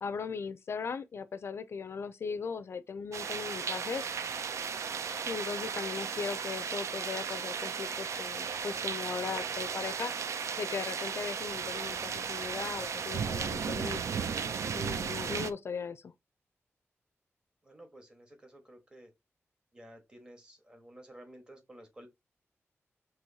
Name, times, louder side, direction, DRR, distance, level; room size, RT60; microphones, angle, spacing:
voice 1, 0.0-4.1 5.3-10.1 10.6-14.0 14.7-16.1, left 5 dB, 60° left, 0.4 m, -38 dB
sound 1, 3.1-15.5, right 6 dB, 80° right, 0.4 m, -35 dB
voice 2, 17.6-19.1 19.7-22.1, right 1 dB, 15° right, 1.3 m, -53 dB
6.1 x 2.9 x 2.7 m
wide cardioid pair, 165°, 5 cm